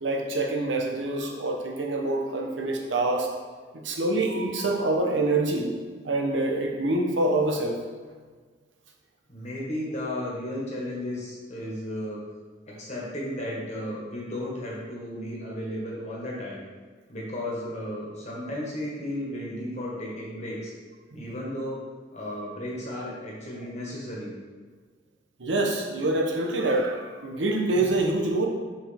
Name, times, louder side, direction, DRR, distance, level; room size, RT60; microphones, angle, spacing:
voice 1, 0.0-3.3 3.7-5.7 6.0-7.8 21.1-21.2 25.4-28.5, right 2 dB, 75° right, 1 dB, 0.9 m, -26 dB
voice 2, 9.3-12.2 12.6-16.6 17.1-20.7 21.1-21.9 22.1-24.3, left 1 dB, 40° left, -4 dB, 1.6 m, -34 dB
5.7 x 5.3 x 3.5 m, 1.5 s
head